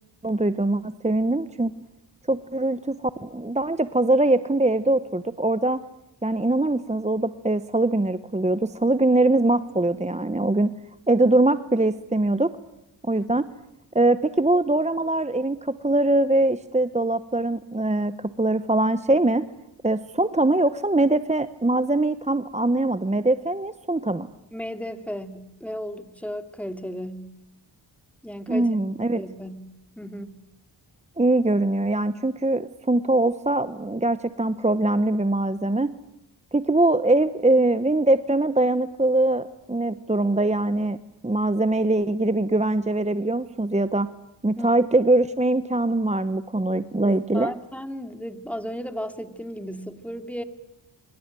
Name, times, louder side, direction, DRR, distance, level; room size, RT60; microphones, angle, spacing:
voice 1, 0.2-1.7 2.3-5.8 6.2-10.7 11.1-12.5 13.1-13.4 13.9-19.4 19.8-24.3 28.5-29.2 31.2-35.9 36.5-41.0 41.2-44.1 44.4-47.5, right 2 dB, 15° right, 13 dB, 1.0 m, -22 dB
voice 2, 24.5-27.3 28.2-28.7 29.2-30.4 44.6-44.7 47.0-50.4, equal, 5° left, 9 dB, 2.7 m, -35 dB
25.5 x 25.0 x 9.0 m, 0.88 s
cardioid pair, 60°, 47 cm